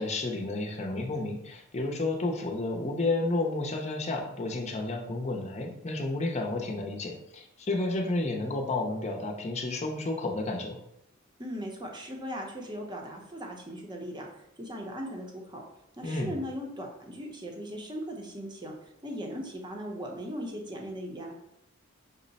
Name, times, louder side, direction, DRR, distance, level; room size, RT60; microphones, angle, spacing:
voice 1, 0.0-10.8 16.0-16.3, left 2 dB, 30° left, 2 dB, 0.6 m, -31 dB
voice 2, 11.4-15.6 16.0-21.3, equal, 20° right, 1 dB, 0.7 m, -38 dB
5.5 x 2.1 x 4.0 m, 0.81 s
head